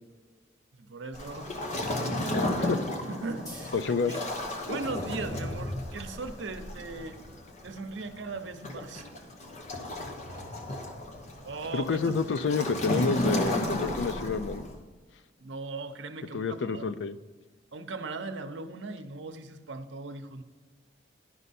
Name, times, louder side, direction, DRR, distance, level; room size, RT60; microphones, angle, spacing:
voice 1, 0.8-1.6 3.1-4.2 4.7-7.2 7.6-9.1 11.4-12.0 15.4-16.9 17.7-20.4, right 3 dB, 85° right, 8 dB, 0.7 m, -38 dB
Waves surf, 1.1-14.8, left 1 dB, 40° left, 1.0 m, -34 dB
voice 2, 2.3-2.8 3.7-4.1 11.7-14.7 16.3-17.2, left 4 dB, 85° left, 12 dB, 0.5 m, -29 dB
sound 1, 3.5-10.6, equal, 20° left, 1.5 m, -53 dB
11.0 x 5.4 x 4.1 m, 1.4 s
head